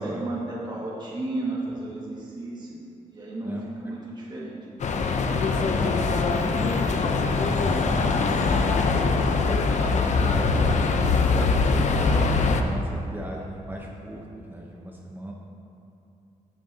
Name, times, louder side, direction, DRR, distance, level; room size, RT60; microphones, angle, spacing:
voice 1, 0.0-4.6, right 2 dB, 30° right, -6 dB, 1.8 m, -33 dB
voice 2, 3.4-3.9 5.6-8.7 9.3-10.5 11.1-15.3, right 1 dB, 15° right, -2 dB, 0.8 m, -37 dB
sound 1, 4.8-12.6, left 4 dB, 55° left, 0.6 m, -22 dB
16.0 x 6.4 x 2.8 m, 2.7 s
cardioid pair, 115°, 14 cm